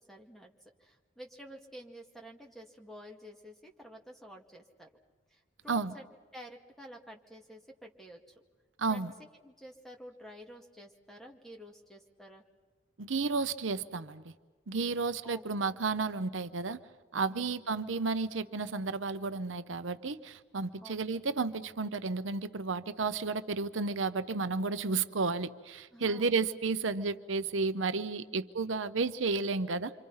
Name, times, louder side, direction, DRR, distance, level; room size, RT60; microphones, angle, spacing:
voice 1, 0.0-4.9 5.3-6.1 6.3-8.4 8.8-12.4 15.2-15.4 17.3-17.6 20.8-21.2 25.9-26.5 28.3-28.4, equal, ahead, 1 dB, 2.2 m, -51 dB
voice 2, 8.8-9.1 13.0-14.3 14.7-16.8 17.1-29.9, right 4 dB, 80° right, 11 dB, 0.9 m, -32 dB
28.0 x 25.5 x 5.7 m, 1.4 s
head